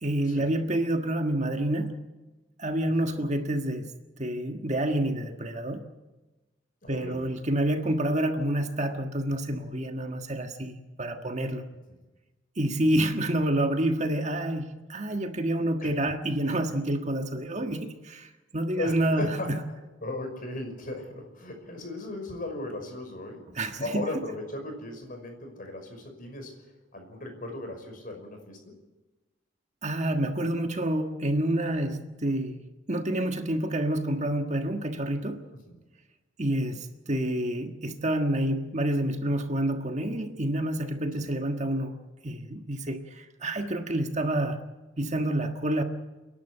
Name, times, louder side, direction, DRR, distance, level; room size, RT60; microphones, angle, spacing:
voice 1, 0.0-2.0 2.6-3.9 4.2-5.8 6.9-11.6 12.6-19.6 23.5-24.1 29.8-35.4 36.4-42.0 42.2-44.6 45.0-45.8, right 1 dB, 35° right, 1.5 m, -28 dB
voice 2, 6.8-7.3 11.7-12.0 15.8-15.9 18.8-19.5 20.0-23.4 23.8-28.7 35.5-35.8, left 2 dB, 45° left, 5.6 m, -37 dB
29.0 x 11.5 x 9.0 m
head